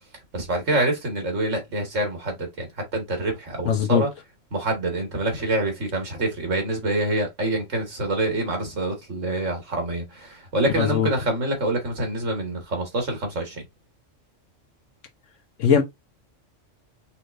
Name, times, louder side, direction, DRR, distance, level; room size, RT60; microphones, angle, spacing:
voice 1, 0.3-2.7 2.9-4.1 4.5-13.6, right 2 dB, 90° right, 2.1 m, -26 dB
voice 2, 3.6-4.1 10.8-11.1 15.6-15.8, left 7 dB, 90° left, 1.3 m, -20 dB
5.7 x 3.3 x 2.6 m
omnidirectional pair, 1.3 m